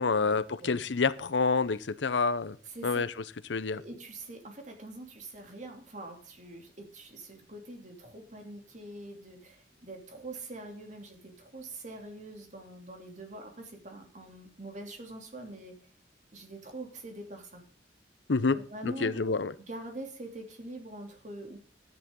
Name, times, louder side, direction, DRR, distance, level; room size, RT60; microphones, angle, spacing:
voice 1, 0.0-2.6 2.8-3.1 3.5-3.8 18.3-18.6 18.8-19.5, left 4 dB, 90° left, 14 dB, 0.7 m, -28 dB
voice 2, 2.7-3.0 3.7-15.7 16.3-17.6 18.5-19.4 19.7-21.6, right 2 dB, 45° right, 3 dB, 3.0 m, -44 dB
13.5 x 10.5 x 3.8 m, 0.41 s
head